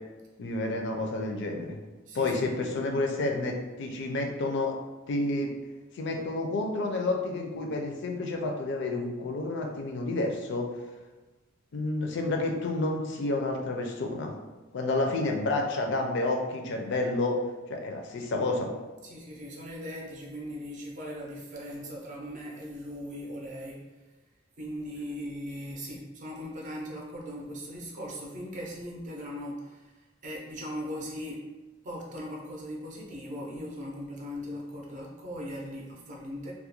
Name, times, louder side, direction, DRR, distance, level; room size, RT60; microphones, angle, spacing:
voice 1, 0.4-1.8 2.1-4.8 5.1-5.5 5.9-10.7 11.7-14.3 14.7-17.4 17.7-18.7, left 2 dB, 65° left, 3 dB, 0.4 m, -30 dB
voice 2, 2.1-2.7 19.0-23.9 24.6-29.9 30.2-31.5 31.8-36.5, equal, 40° right, -3 dB, 0.5 m, -39 dB
2.3 x 2.1 x 2.9 m, 1.2 s
head